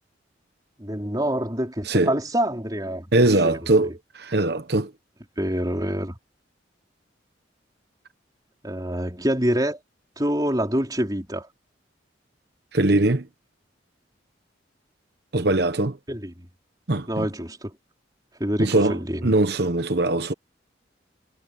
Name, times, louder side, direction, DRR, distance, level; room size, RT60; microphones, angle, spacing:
voice 1, 0.8-3.1 3.4-3.9 5.4-6.1 8.6-9.8 10.2-11.5 16.1-16.5 17.1-17.7 18.4-19.3, equal, 20° right, 4.6 m, -26 dB
voice 2, 3.1-4.9 12.7-13.3 15.3-16.0 16.9-17.3 18.6-20.3, right 2 dB, 55° right, 1.0 m, -21 dB
head